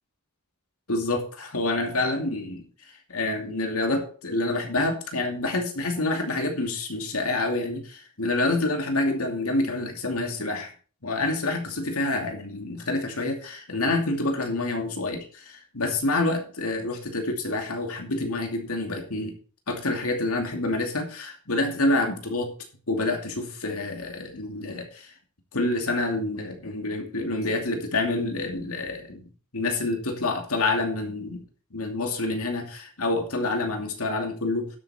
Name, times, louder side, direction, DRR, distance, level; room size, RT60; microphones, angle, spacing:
voice 1, 0.9-10.7 11.0-19.4 19.7-22.5 22.9-25.1 25.5-29.3 29.5-31.4 31.7-34.7, left 2 dB, 80° left, 4 dB, 2.5 m, -27 dB
12.0 x 8.3 x 4.3 m, 0.40 s
head